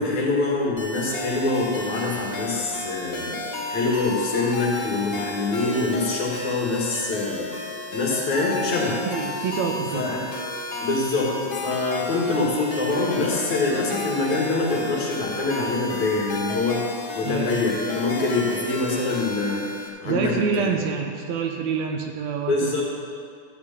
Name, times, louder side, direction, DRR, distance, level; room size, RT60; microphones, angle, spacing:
voice 1, 0.0-3.4 3.7-7.5 7.9-9.0 9.9-10.2 10.8-16.8 17.1-20.3 22.5-22.8, left 3 dB, 65° left, -3 dB, 3.3 m, -24 dB
sound 1, 0.8-19.9, left 2 dB, 40° left, 1.4 m, -33 dB
voice 2, 9.0-10.1 17.2-17.7 20.0-22.7, right 6 dB, 70° right, 3 dB, 2.0 m, -27 dB
13.5 x 5.2 x 8.5 m, 2.2 s
omnidirectional pair, 3.6 m